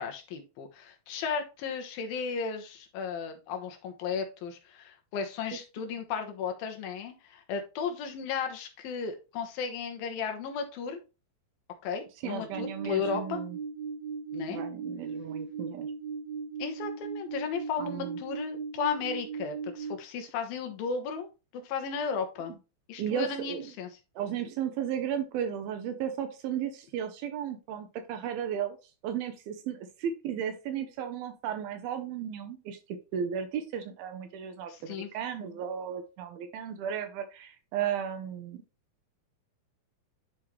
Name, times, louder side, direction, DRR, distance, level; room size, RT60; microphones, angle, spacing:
voice 1, 0.0-11.0 11.8-13.4 14.3-14.6 16.6-21.3 21.5-22.6 22.9-23.9 34.7-35.1, left 6 dB, 80° left, 4 dB, 2.9 m, -35 dB
voice 2, 12.2-13.6 14.5-15.9 17.8-18.2 23.0-23.7 24.2-28.8 29.0-32.8 33.1-38.6, right 8 dB, 80° right, 6 dB, 2.6 m, -34 dB
sound 1, 12.5-20.0, right 5 dB, 55° right, 2.2 m, -37 dB
10.5 x 3.7 x 3.1 m, 0.30 s
omnidirectional pair, 4.3 m